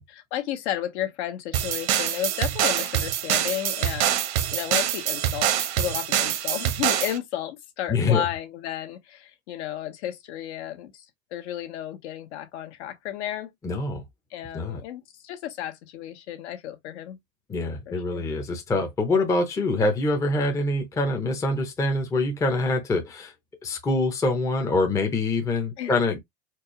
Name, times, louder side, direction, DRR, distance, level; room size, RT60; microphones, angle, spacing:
voice 1, 0.0-4.2 4.5-11.0 11.3-13.5 14.3-17.2 17.9-18.2 25.8-25.9, left 12 dB, 70° left, 1.3 m, -33 dB
sound 1, 1.5-7.2, right 11 dB, 75° right, 1.1 m, -25 dB
voice 2, 7.9-8.3 13.6-14.0 14.5-14.8 17.5-23.3 23.6-26.2, left 2 dB, 10° left, 0.6 m, -25 dB
4.5 x 2.3 x 3.0 m
supercardioid pair, 160°, 35 cm